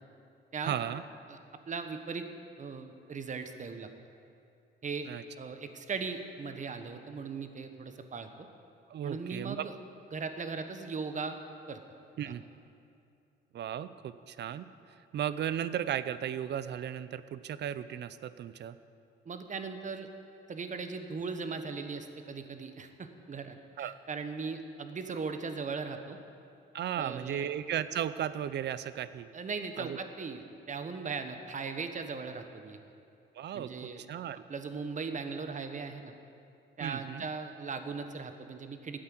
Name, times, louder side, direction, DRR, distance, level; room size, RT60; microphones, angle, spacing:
voice 1, 0.6-1.0 5.0-5.2 8.9-9.7 12.2-12.5 13.5-14.7 15.1-18.8 23.8-24.0 26.7-29.3 29.8-30.0 33.4-34.4 36.8-37.2, right 10 dB, 60° right, 14 dB, 0.6 m, -35 dB
voice 2, 1.7-2.2 2.6-3.9 4.8-5.1 5.4-8.5 9.0-9.7 10.1-11.4 11.7-11.8 19.2-20.1 20.5-26.2 27.0-27.5 29.3-32.8 33.5-34.0 34.5-36.1 36.8-39.0, right 5 dB, 40° right, 7 dB, 1.2 m, -38 dB
13.0 x 8.8 x 7.7 m, 2.5 s
cardioid pair, 90°, 20 cm